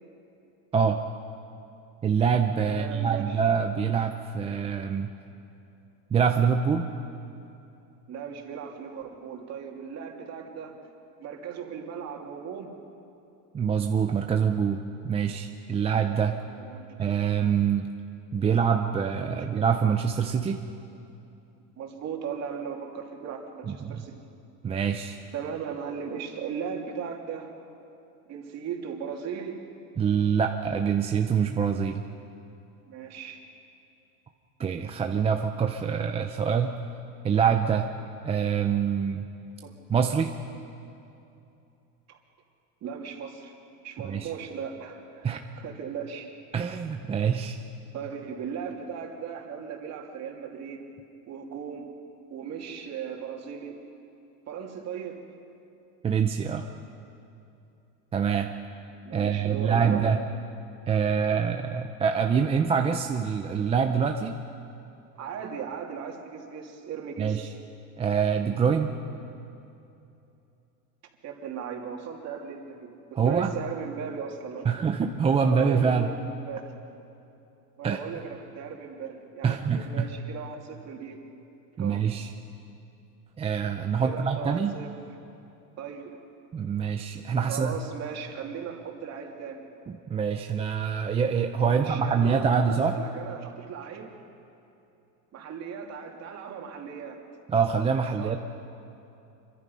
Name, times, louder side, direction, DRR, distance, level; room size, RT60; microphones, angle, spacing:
voice 1, 2.0-5.1 6.1-6.9 13.5-16.4 17.0-17.9 18.3-20.6 23.7-24.0 24.6-25.2 30.0-32.0 34.6-36.8 37.2-37.9 38.2-39.3 39.9-40.3 44.0-44.3 45.2-45.4 46.5-47.6 56.0-56.7 58.1-58.5 59.1-60.2 60.9-64.4 67.2-67.5 68.0-68.9 73.2-73.5 74.7-76.2 77.8-78.0 79.4-80.1 81.8-82.3 83.4-84.7 86.5-87.8 89.9-93.0 97.5-98.4, right 6 dB, 15° right, 4 dB, 0.5 m, -25 dB
voice 2, 2.7-3.4 8.1-10.8 11.2-12.8 16.3-17.1 19.4-19.5 21.8-24.2 25.3-27.5 28.3-29.6 32.9-33.4 39.6-39.7 42.1-42.2 42.8-43.5 43.8-46.3 47.9-50.8 51.3-51.9 52.3-53.8 54.5-55.2 59.0-60.0 65.2-67.5 71.2-74.7 75.4-76.7 77.8-81.2 81.7-82.0 84.0-84.9 85.8-86.1 87.4-89.6 91.6-94.1 95.3-97.2 98.2-98.4, right 7 dB, 35° right, 1 dB, 2.9 m, -37 dB
26.5 x 23.5 x 5.5 m, 2.8 s
supercardioid pair, 145°, 45 cm